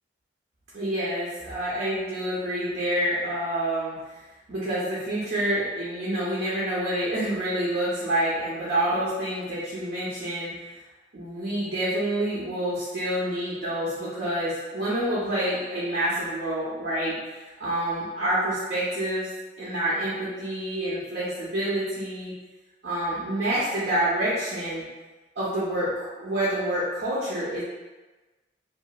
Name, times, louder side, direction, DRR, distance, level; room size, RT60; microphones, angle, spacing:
voice 1, 0.7-4.0 4.5-10.5 11.1-17.2 17.6-19.3 19.6-22.3 22.8-24.8 25.4-27.6, right 1 dB, 65° right, -9 dB, 0.6 m, -27 dB
2.8 x 2.4 x 2.2 m, 1.2 s
head